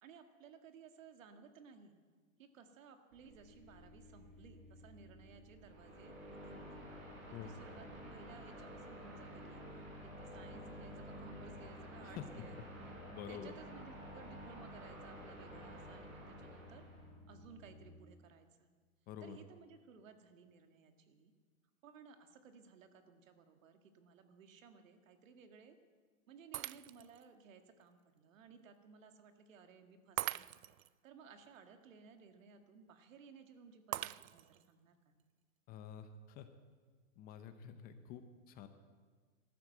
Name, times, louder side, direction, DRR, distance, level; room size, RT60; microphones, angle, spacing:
voice 1, 0.0-2.0 2.4-6.8 7.3-9.6 10.0-12.8 13.3-16.9 17.3-18.7 19.2-21.3 21.8-25.8 26.3-30.5 31.0-35.2, right 5 dB, 70° right, 7 dB, 1.9 m, -59 dB
sound 1, 3.1-17.9, equal, 50° right, 5.4 m, -58 dB
sound 2, 5.6-17.1, equal, 30° right, 6.2 m, -51 dB
voice 2, 13.1-13.6 19.1-19.4 35.7-36.5 37.2-38.7, left 9 dB, 20° left, 9 dB, 0.7 m, -48 dB
Shatter, 26.5-27.2 27.8-27.9 30.2-30.9 33.9-34.7, right 14 dB, 85° right, 0.5 m, -42 dB
13.5 x 12.5 x 7.8 m, 1.5 s
hypercardioid pair, 145°, 41 cm